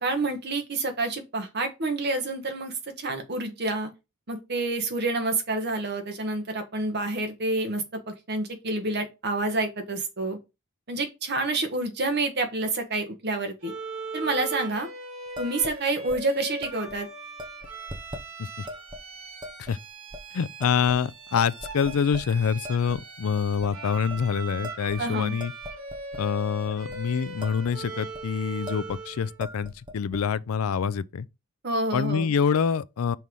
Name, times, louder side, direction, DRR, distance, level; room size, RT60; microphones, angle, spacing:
voice 1, 0.0-3.9 4.3-10.4 10.9-13.7 14.1-14.9 15.4-17.1 25.0-25.3 31.6-32.3, right 2 dB, 50° right, 1.3 m, -28 dB
Bowed string instrument, 13.6-29.4, right 3 dB, 80° right, 2.8 m, -39 dB
sound 1, 15.4-15.8 16.1-16.2 16.6-17.0 17.4-18.2 18.7-19.0 19.4-19.7 20.1-20.2 20.6-21.1 21.4-22.3 22.6-23.0 23.4-23.7 24.1-24.2 24.6-26.2 26.7-27.0 27.2-27.7 28.0-28.2 28.7-29.0 29.3-30.2, left 1 dB, 20° right, 0.8 m, -40 dB
voice 2, 20.3-25.5 26.2-31.3 31.9-33.2, left 6 dB, 90° left, 0.4 m, -26 dB
5.6 x 3.2 x 5.3 m
head